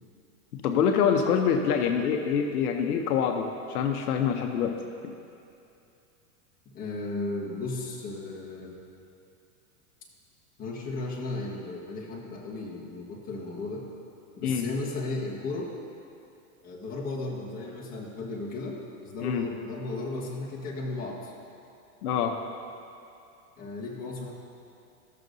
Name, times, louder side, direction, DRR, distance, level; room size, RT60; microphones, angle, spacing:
voice 1, 0.5-4.8 5.0-5.1 14.4-14.7 19.2-19.5 22.0-22.3, left 7 dB, 75° left, 4 dB, 0.8 m, -25 dB
voice 2, 6.7-8.7 10.6-13.9 14.4-15.7 16.6-21.3 23.6-24.3, left 2 dB, 20° left, -4 dB, 1.3 m, -35 dB
13.5 x 6.6 x 2.6 m, 2.6 s
supercardioid pair, 145°, 45 cm